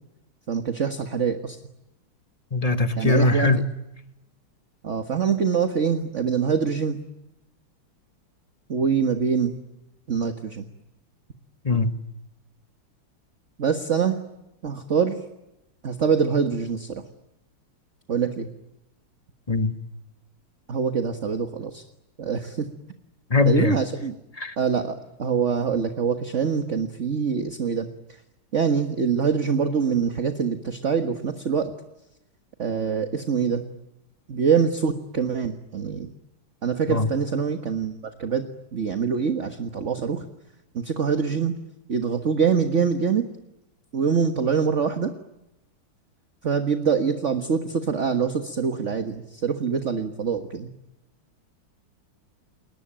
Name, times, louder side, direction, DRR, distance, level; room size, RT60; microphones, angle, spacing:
voice 1, 0.5-1.6 3.0-3.5 4.8-7.0 8.7-9.5 10.1-10.7 13.6-14.2 14.6-15.2 15.8-17.0 18.1-18.5 20.7-21.8 22.2-22.7 23.4-24.1 24.6-27.9 28.5-31.7 32.6-33.6 34.3-36.1 36.6-38.4 38.7-40.3 40.7-41.5 41.9-43.3 43.9-45.1 46.4-50.7, right 6 dB, 40° right, 1.6 m, -24 dB
voice 2, 2.5-3.7 11.6-11.9 19.5-19.7 23.3-23.8 24.4-24.5 36.9-37.1, left 3 dB, 20° left, 1.1 m, -21 dB
30.0 x 21.5 x 8.9 m
omnidirectional pair, 2.3 m